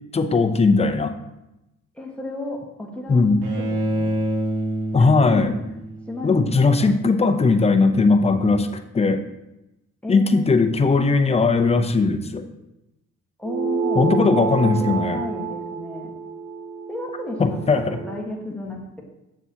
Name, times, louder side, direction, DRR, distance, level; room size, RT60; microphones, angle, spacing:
voice 1, 0.1-1.1 3.1-3.4 4.9-5.5 6.2-8.7 8.9-9.2 10.1-12.4 13.9-15.2 17.4-18.0, left 4 dB, 20° left, 7 dB, 0.6 m, -18 dB
voice 2, 1.9-4.1 5.0-5.5 6.1-6.4 6.8-6.9 10.0-10.5 13.4-14.1 14.8-16.1 16.9-19.0, left 2 dB, 5° left, -1 dB, 1.5 m, -33 dB
Bowed string instrument, 3.4-6.5, right 1 dB, 90° right, 1.4 m, -27 dB
sound 1, 13.4-18.3, right 6 dB, 70° right, 0.7 m, -28 dB
6.9 x 6.9 x 2.9 m, 0.93 s
cardioid pair, 90°, 30 cm